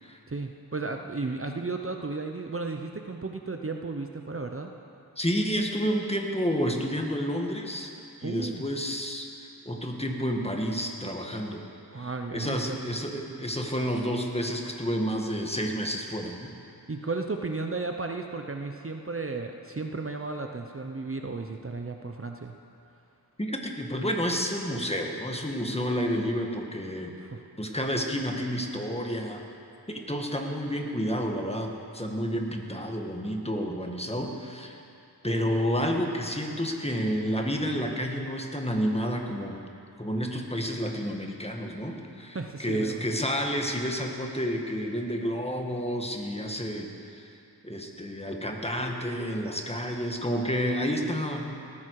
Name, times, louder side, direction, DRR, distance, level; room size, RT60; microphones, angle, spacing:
voice 1, 0.3-4.7 8.2-8.6 11.9-12.8 16.9-22.6 27.2-27.4 42.3-43.0, right 3 dB, 35° right, 4 dB, 0.8 m, -34 dB
voice 2, 5.2-7.9 8.2-9.3 9.6-11.6 12.0-16.5 23.4-27.1 27.6-29.4 29.9-34.8 35.2-39.6 40.0-46.9 47.2-47.3 47.6-51.5, equal, 15° left, 2 dB, 1.7 m, -30 dB
18.5 x 14.5 x 4.8 m, 2.7 s
wide cardioid pair, 60°, 39 cm